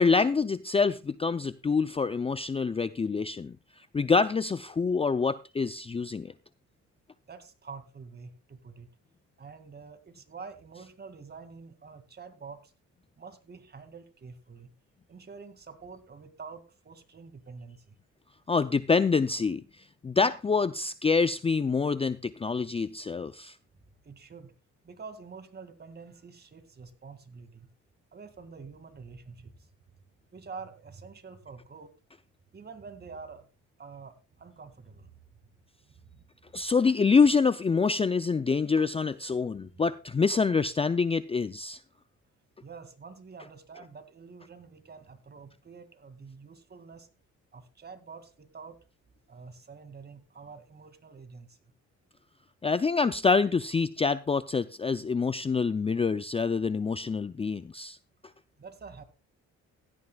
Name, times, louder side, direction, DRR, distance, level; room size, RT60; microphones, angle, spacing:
voice 1, 0.0-3.6 3.9-6.3 18.5-19.6 20.0-23.6 36.5-41.8 52.6-58.0, left 4 dB, 20° left, 13 dB, 0.4 m, -26 dB
voice 2, 7.3-8.9 9.4-12.7 13.2-14.7 15.1-17.9 24.0-24.5 24.8-27.7 28.1-29.7 30.3-31.9 32.5-33.5 33.8-35.1 35.9-36.3 42.6-47.1 47.5-48.8 49.3-51.6 58.6-59.0, right 5 dB, 35° right, 9 dB, 2.2 m, -47 dB
16.0 x 13.0 x 2.3 m, 0.31 s
cardioid pair, 90°, 30 cm